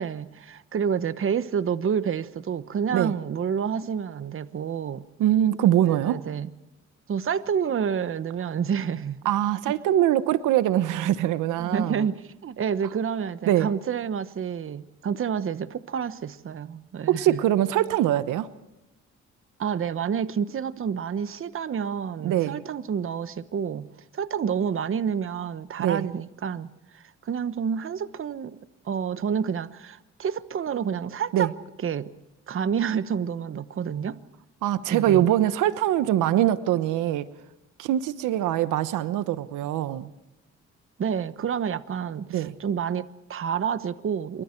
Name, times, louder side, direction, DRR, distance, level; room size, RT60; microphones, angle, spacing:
voice 1, 0.0-5.0 5.9-6.5 7.1-9.2 9.7-9.8 11.6-17.4 19.6-23.9 24.1-28.6 28.8-31.5 31.8-32.1 32.5-34.2 34.9-35.3 41.0-44.4, right 7 dB, 45° right, 13 dB, 1.1 m, -29 dB
voice 2, 5.2-6.2 9.2-12.1 13.5-13.7 17.1-18.5 22.2-22.6 25.8-26.1 31.3-31.5 34.6-37.3 37.8-40.1 42.3-42.5, right 12 dB, 90° right, 13 dB, 1.0 m, -23 dB
27.0 x 23.5 x 4.5 m, 0.97 s
cardioid pair, 90°, 30 cm